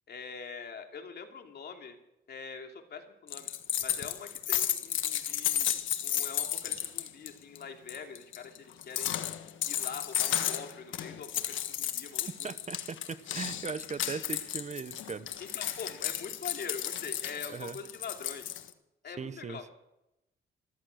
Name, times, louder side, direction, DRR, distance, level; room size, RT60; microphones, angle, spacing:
voice 1, 0.1-2.0 2.3-3.5 3.8-9.2 9.6-12.5 15.4-18.5 19.0-19.6, left 5 dB, 55° left, 4 dB, 2.9 m, -44 dB
sound 1, 3.3-7.3 7.5-7.6 7.9-18.7, left 11 dB, 75° left, 1.5 m, -33 dB
voice 2, 12.2-15.3 17.5-17.8 19.1-19.7, right 5 dB, 35° right, 14 dB, 1.0 m, -39 dB
14.5 x 14.0 x 6.4 m, 0.87 s
cardioid pair, 90°, 20 cm